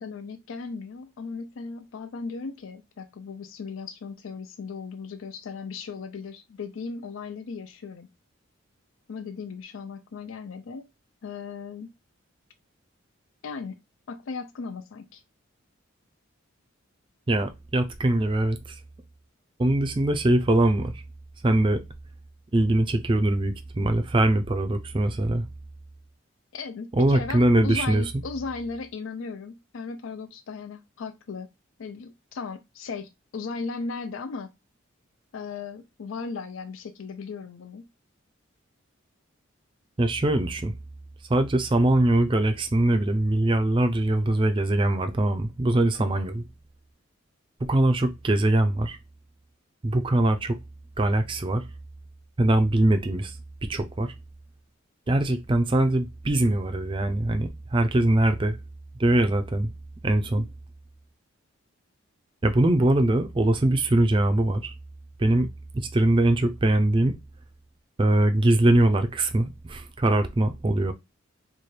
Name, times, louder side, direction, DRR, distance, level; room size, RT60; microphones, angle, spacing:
voice 1, 0.0-8.1 9.1-10.9 11.2-11.9 13.4-13.8 14.1-15.2 26.5-31.5 31.8-34.5 35.3-37.9, left 4 dB, 70° left, 0.4 m, -36 dB
voice 2, 17.3-18.8 19.6-21.0 21.4-21.8 22.5-25.5 26.9-28.0 40.0-40.7 41.3-46.4 47.6-49.0 49.8-50.6 51.0-51.6 52.4-53.3 53.7-54.1 55.1-58.6 59.0-59.7 60.0-60.5 62.4-64.7 65.2-65.5 65.9-67.2 68.0-70.9, right 1 dB, 25° right, 0.4 m, -22 dB
3.2 x 2.2 x 4.2 m
head